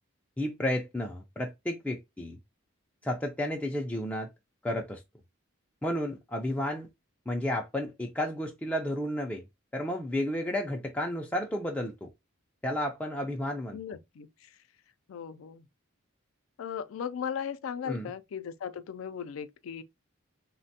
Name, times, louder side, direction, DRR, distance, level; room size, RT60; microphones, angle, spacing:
voice 1, 0.4-2.4 3.0-4.3 4.6-5.0 5.8-6.9 7.3-9.4 9.7-12.1 12.6-13.8 17.9-18.1, left 1 dB, 5° left, 0.3 m, -32 dB
voice 2, 13.7-14.3 15.1-15.6 16.6-19.8, left 7 dB, 85° left, 0.4 m, -37 dB
3.2 x 2.1 x 2.6 m
head